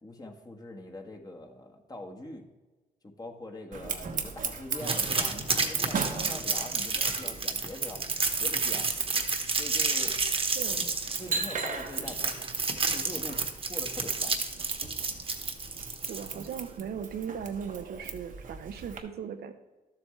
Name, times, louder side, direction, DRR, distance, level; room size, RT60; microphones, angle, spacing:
voice 1, 0.0-2.5 3.0-8.1 8.4-8.9 9.6-10.2 10.7-10.9 11.2-12.4 12.9-13.4 13.7-14.3, left 1 dB, 25° left, 2 dB, 1.4 m, -43 dB
Scissors, 3.7-19.0, right 5 dB, 55° right, 1.1 m, -37 dB
sound 1, 4.8-16.5, right 4 dB, 35° right, 1.2 m, -30 dB
voice 2, 16.1-19.5, right 7 dB, 75° right, 8 dB, 0.8 m, -38 dB
12.0 x 7.6 x 3.2 m, 1.2 s
cardioid pair, 75°, 16 cm